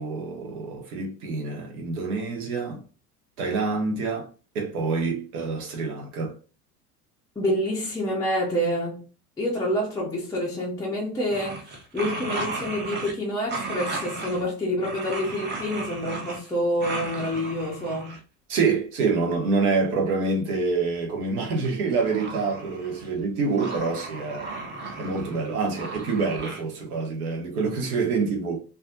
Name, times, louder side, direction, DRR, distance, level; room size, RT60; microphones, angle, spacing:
voice 1, 0.0-2.8 3.4-4.3 4.5-6.3 18.5-24.5 25.0-28.6, right 4 dB, 65° right, 1.1 m, -26 dB
voice 2, 7.4-9.1 9.4-18.2, equal, 5° left, 0.6 m, -27 dB
sound 1, 11.3-13.1 13.5-14.4 14.8-16.5 16.8-18.2 21.6-23.2 23.5-26.6, right 3 dB, 20° right, 0.8 m, -35 dB
2.5 x 2.3 x 2.6 m
figure-of-eight pair, 70°, 48 cm